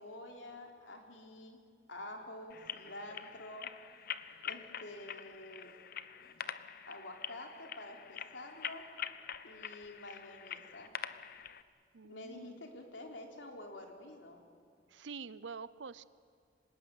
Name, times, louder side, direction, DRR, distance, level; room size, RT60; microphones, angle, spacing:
voice 1, 0.0-1.6 1.9-3.7 4.4-5.7 6.8-8.8 9.4-10.9 12.0-14.4, left 1 dB, 80° left, 2 dB, 3.4 m, -48 dB
sound 1, 2.5-11.6, left 9 dB, 55° left, 0.8 m, -45 dB
voice 2, 11.9-12.5 14.9-16.0, right 5 dB, 80° right, 17 dB, 0.7 m, -46 dB
26.5 x 18.0 x 9.6 m, 2.2 s
head